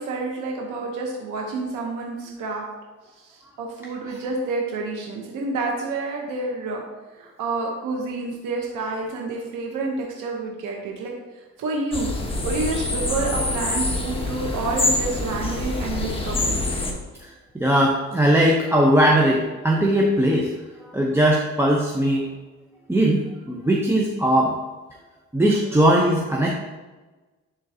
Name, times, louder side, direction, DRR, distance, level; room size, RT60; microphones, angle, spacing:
voice 1, 0.0-2.7 3.2-6.8 7.2-12.1 12.4-16.6, right 3 dB, 90° right, 0 dB, 1.0 m, -29 dB
sound 1, 11.9-16.9, left 2 dB, 20° left, 1.2 m, -26 dB
voice 2, 17.5-20.5 20.9-22.3 22.9-24.5 25.3-26.5, right 1 dB, 10° right, -2 dB, 0.7 m, -19 dB
10.5 x 3.8 x 2.8 m, 1.2 s
cardioid pair, 90°, 30 cm